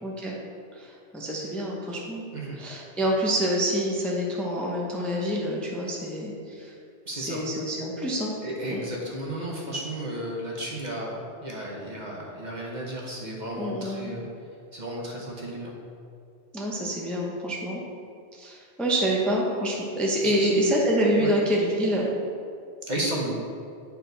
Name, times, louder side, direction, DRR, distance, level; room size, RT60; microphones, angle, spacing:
voice 1, 0.0-0.4 0.7-2.2 2.6-6.7 7.1-8.3 8.7-8.9 13.6-14.1 16.5-17.8 18.3-22.1, equal, ahead, -3 dB, 0.7 m, -27 dB
voice 2, 7.0-7.4 8.4-14.2 14.7-15.7 20.2-20.7 21.2-21.3 22.9-23.4, right 1 dB, 40° right, -3 dB, 1.0 m, -33 dB
8.4 x 4.6 x 4.0 m, 2.5 s
omnidirectional pair, 1.2 m